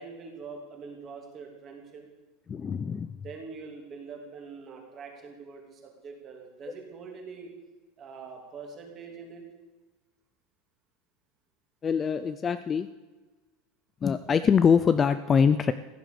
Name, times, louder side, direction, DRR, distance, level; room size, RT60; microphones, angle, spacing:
voice 1, 0.0-2.1 3.1-7.5 8.0-9.5, right 5 dB, 25° right, 1 dB, 2.9 m, -44 dB
voice 2, 2.5-3.1 11.8-12.9 14.0-15.7, left 6 dB, 15° left, 12 dB, 0.4 m, -23 dB
15.5 x 11.0 x 6.9 m, 1.2 s
supercardioid pair, 175°, 0 cm